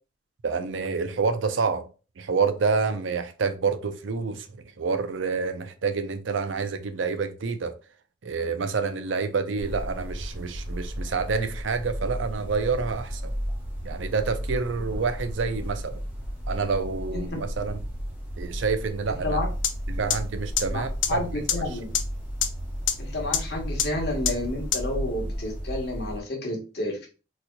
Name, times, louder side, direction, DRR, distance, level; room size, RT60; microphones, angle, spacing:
voice 1, 0.4-1.8 2.2-4.5 4.8-7.7 8.2-13.3 13.8-16.0 16.5-17.8 18.4-19.4 19.9-21.2, right 4 dB, 80° right, 0.5 m, -28 dB
sound 1, 9.6-26.2, equal, 5° right, 0.9 m, -34 dB
sound 2, 19.6-19.7 20.1-20.2 20.6-20.7 21.0-21.1 21.5-21.6 22.0-22.1 22.4-22.5 22.9-23.0 23.3-23.4 23.8-23.9 24.3-24.4 24.7-24.8, left 9 dB, 80° left, 0.5 m, -22 dB
voice 2, 21.1-21.9 23.0-27.1, left 1 dB, 55° left, 1.2 m, -30 dB
4.1 x 2.9 x 2.2 m
head